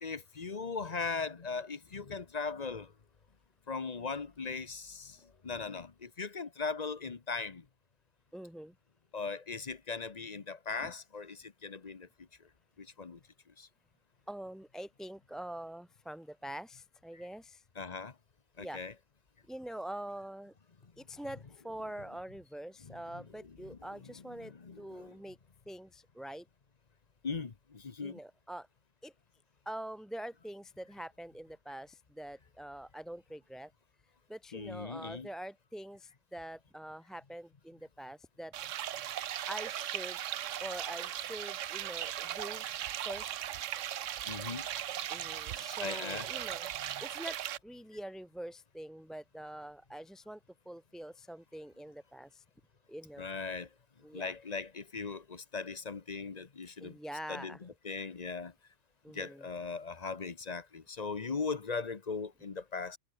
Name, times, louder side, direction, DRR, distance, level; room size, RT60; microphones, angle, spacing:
voice 1, 0.0-2.9 3.7-5.2 5.4-7.6 9.1-12.1 13.0-13.2 13.6-13.7 17.8-18.1 18.6-18.9 22.8-22.9 23.7-23.8 24.4-25.1 27.2-28.2 34.5-35.3 44.3-44.7 45.8-46.2 53.2-53.7 54.1-56.9 57.3-58.5 59.1-63.0, left 4 dB, 35° left, 1.0 m, -39 dB
voice 2, 8.3-8.7 10.8-10.9 14.3-17.6 18.6-18.8 19.5-20.5 21.0-25.4 25.7-26.5 28.0-28.7 29.0-29.1 29.7-33.7 34.3-38.5 39.5-40.2 40.6-42.6 43.1-43.4 45.1-46.7 47.0-50.4 50.7-52.4 52.9-53.3 54.0-54.3 56.8-57.6 59.0-59.5, right 1 dB, ahead, 1.9 m, -45 dB
sound 1, 38.5-47.6, right 11 dB, 75° right, 1.1 m, -38 dB
omnidirectional pair, 1.3 m